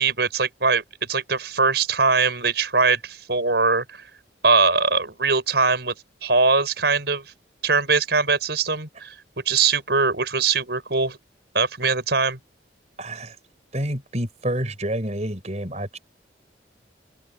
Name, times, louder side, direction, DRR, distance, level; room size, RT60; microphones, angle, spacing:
voice 1, 0.0-4.0 4.4-5.9 6.2-7.3 7.6-9.1 9.4-11.2 11.5-12.4, right 4 dB, 65° right, 5.1 m, -21 dB
voice 2, 13.0-13.3 13.7-16.0, right 1 dB, 35° right, 4.7 m, -28 dB
open air
head